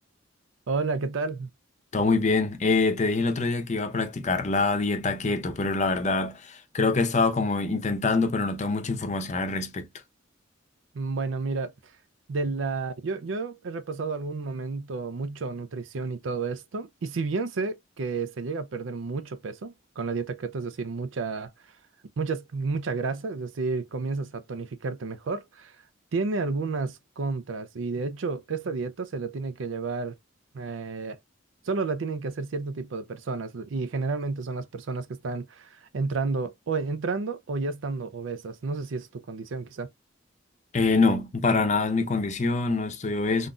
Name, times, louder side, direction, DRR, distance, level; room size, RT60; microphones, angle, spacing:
voice 1, 0.7-1.5 10.9-11.7 12.3-21.5 22.2-25.7 26.1-30.1 30.5-31.2 31.7-39.9, right 4 dB, 75° right, 0.5 m, -31 dB
voice 2, 1.9-9.9 40.7-43.5, left 3 dB, 35° left, 0.6 m, -25 dB
3.8 x 2.5 x 2.2 m
head